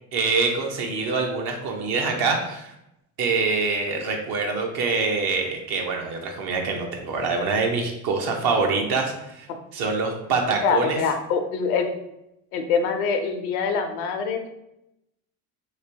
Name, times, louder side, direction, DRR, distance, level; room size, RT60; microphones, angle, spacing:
voice 1, 0.1-2.7 3.2-11.0, right 4 dB, 55° right, 2 dB, 0.9 m, -25 dB
voice 2, 10.6-11.9 12.5-14.5, left 5 dB, 85° left, 6 dB, 0.6 m, -24 dB
3.0 x 2.9 x 2.7 m, 0.86 s
hypercardioid pair, 75°, 43 cm